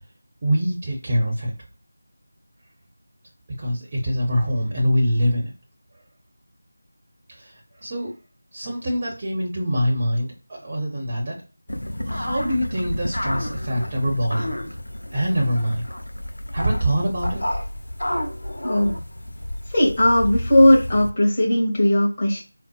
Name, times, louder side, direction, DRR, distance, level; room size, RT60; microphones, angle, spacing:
voice 1, 0.4-1.5 3.6-5.5 7.3-7.5 7.8-8.1 8.5-11.4 12.1-14.5 15.1-15.8 16.5-17.4, equal, 25° right, -2 dB, 0.7 m, -24 dB
sound 1, 11.7-21.1, left 1 dB, 70° left, 0.8 m, -30 dB
voice 2, 19.7-22.4, left 1 dB, 25° left, -3 dB, 1.0 m, -17 dB
4.0 x 2.0 x 2.3 m, 0.33 s
figure-of-eight pair, 170°, 0 cm